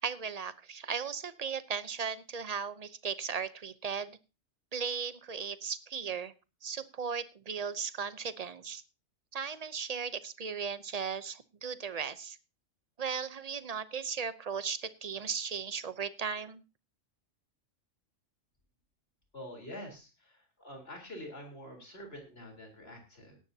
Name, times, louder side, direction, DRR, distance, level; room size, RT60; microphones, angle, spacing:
voice 1, 0.0-4.2 4.7-6.3 6.6-8.8 9.3-12.4 13.0-16.6, right 6 dB, 35° right, 14 dB, 0.7 m, -36 dB
voice 2, 19.3-23.4, left 1 dB, 55° left, 3 dB, 4.2 m, -46 dB
17.5 x 12.0 x 2.8 m, 0.30 s
omnidirectional pair, 1.3 m